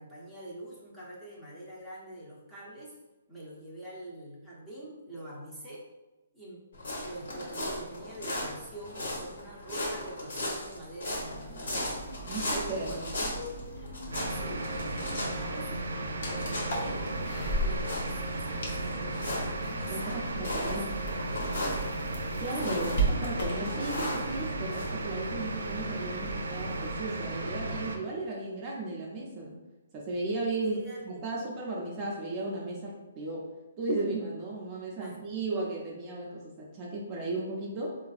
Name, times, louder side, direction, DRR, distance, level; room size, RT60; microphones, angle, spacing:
voice 1, 0.0-3.0 3.3-5.8 6.3-12.0 12.7-13.5 14.1-15.7 16.2-17.2 17.6-20.2 20.5-22.1 22.6-23.1 30.6-31.0 31.3-31.4 35.0-35.2, equal, 5° left, -7 dB, 0.7 m, -44 dB
sound 1, 6.7-24.9, left 1 dB, 75° left, 1.0 m, -38 dB
sound 2, 11.3-27.0, right 2 dB, 55° left, 0.8 m, -38 dB
voice 2, 12.3-13.0 19.9-20.9 22.4-29.6 29.9-30.8 31.1-33.5 33.8-38.0, right 2 dB, 25° right, -4 dB, 0.5 m, -35 dB
sound 3, 14.1-28.0, right 2 dB, 85° right, 0.4 m, -35 dB
3.8 x 2.4 x 2.4 m, 1.1 s
hypercardioid pair, 150°, 0 cm